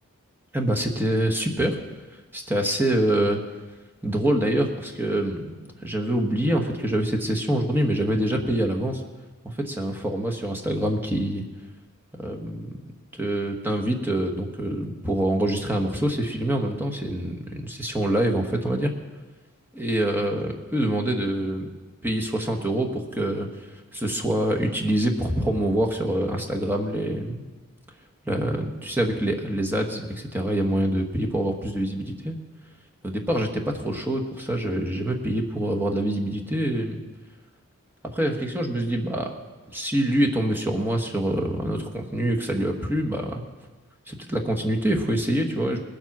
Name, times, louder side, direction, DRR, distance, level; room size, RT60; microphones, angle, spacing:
voice 1, 0.5-1.8 2.3-3.4 4.0-9.0 9.4-11.4 12.2-12.8 13.1-18.9 19.7-21.7 22.0-27.4 28.2-32.3 33.0-37.0 38.0-39.3 39.7-43.4 44.1-45.8, right 1 dB, 10° right, 2 dB, 1.3 m, -25 dB
20.0 x 7.5 x 6.0 m, 1.2 s
head